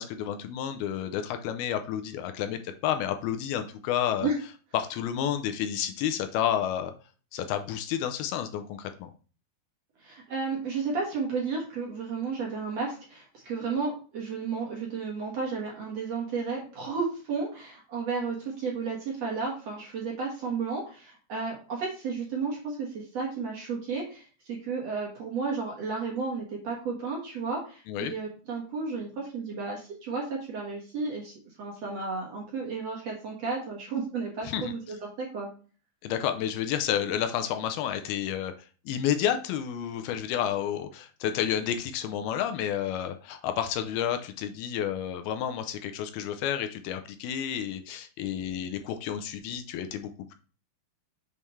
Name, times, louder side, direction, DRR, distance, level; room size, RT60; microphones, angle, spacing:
voice 1, 0.0-4.3 4.7-6.9 7.3-9.1 27.9-28.1 34.5-34.7 36.0-38.5 38.9-50.3, left 10 dB, 80° left, 8 dB, 2.5 m, -30 dB
voice 2, 10.0-35.5, right 4 dB, 50° right, -2 dB, 2.2 m, -33 dB
6.9 x 5.4 x 3.2 m, 0.36 s
omnidirectional pair, 4.5 m